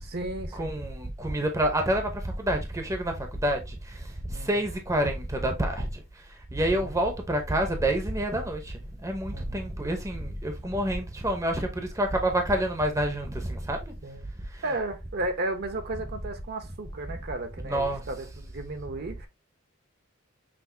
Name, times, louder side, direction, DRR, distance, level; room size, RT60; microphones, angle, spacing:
voice 1, 0.0-0.7 4.3-4.5 6.7-6.9 9.3-9.7 14.0-14.3 14.6-19.3, right 2 dB, 50° right, 0.8 m, -34 dB
voice 2, 0.5-13.9 14.4-14.7 15.9-16.0 17.6-18.1, right 1 dB, 15° right, 0.7 m, -28 dB
5.9 x 2.6 x 2.6 m
head